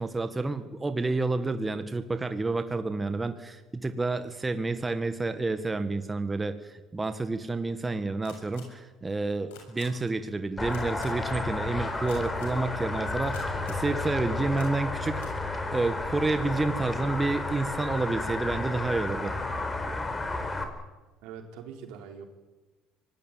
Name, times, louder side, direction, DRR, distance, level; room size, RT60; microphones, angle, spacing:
voice 1, 0.0-15.4 15.7-19.3, right 3 dB, 20° right, 9 dB, 1.8 m, -29 dB
sound 1, 8.2-8.6 9.5-9.8 10.7-11.1 12.1-12.5 13.3-13.8 14.6-14.7 15.1-15.3, left 9 dB, 90° left, 7.2 m, -47 dB
sound 2, 10.6-20.6, left 2 dB, 20° left, 4.9 m, -32 dB
voice 2, 21.2-22.2, right 7 dB, 75° right, 5 dB, 4.0 m, -43 dB
24.5 x 19.0 x 9.3 m, 1.2 s
supercardioid pair, 85°, 0 cm